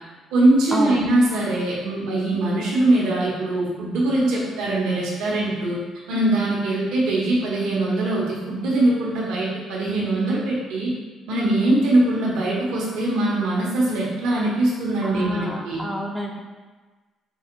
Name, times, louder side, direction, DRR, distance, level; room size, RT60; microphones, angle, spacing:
voice 1, 0.3-5.8 6.1-10.9 11.3-15.8, right 2 dB, 85° right, -5 dB, 0.9 m, -22 dB
voice 2, 15.0-16.4, equal, 5° left, 0 dB, 0.4 m, -28 dB
4.7 x 2.2 x 3.9 m, 1.3 s
cardioid pair, 90°, 0 cm